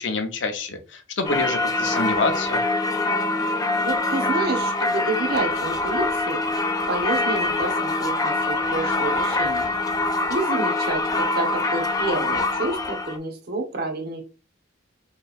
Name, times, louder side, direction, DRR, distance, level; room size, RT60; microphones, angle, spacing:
voice 1, 0.0-2.6, left 3 dB, 70° left, 5 dB, 0.8 m, -27 dB
Singing / Church bell, 1.2-13.2, left 2 dB, 20° left, 0.3 m, -24 dB
voice 2, 3.8-6.4 6.9-9.7 10.3-14.2, right 3 dB, 50° right, 3 dB, 0.9 m, -29 dB
4.4 x 3.1 x 2.4 m, 0.33 s
head